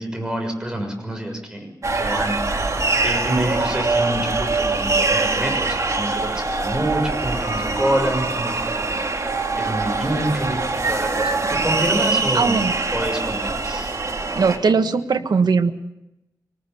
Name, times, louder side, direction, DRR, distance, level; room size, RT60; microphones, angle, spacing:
voice 1, 0.0-1.7 1.9-2.7 3.0-12.6 12.9-13.9, right 1 dB, 10° right, 3 dB, 6.5 m, -27 dB
sound 1, 1.8-14.6, right 3 dB, 45° right, 3.4 m, -23 dB
voice 2, 12.3-12.7 14.3-15.7, right 5 dB, 85° right, 8 dB, 1.5 m, -19 dB
25.0 x 19.5 x 7.1 m, 0.92 s
wide cardioid pair, 110°, 7 cm